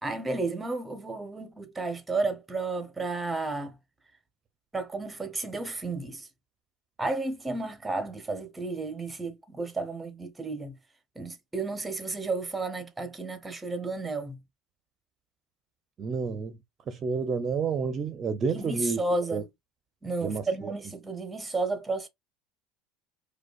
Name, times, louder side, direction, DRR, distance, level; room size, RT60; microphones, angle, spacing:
voice 1, 0.0-3.8 4.7-6.3 7.0-10.8 11.1-14.4 18.5-19.5 20.0-22.1, right 3 dB, 10° right, 0.9 m, -32 dB
voice 2, 16.0-16.6 16.9-19.0 19.3-19.4 20.2-20.7, right 5 dB, 35° right, 0.6 m, -30 dB
4.8 x 2.3 x 2.4 m
supercardioid pair, 115°, 0 cm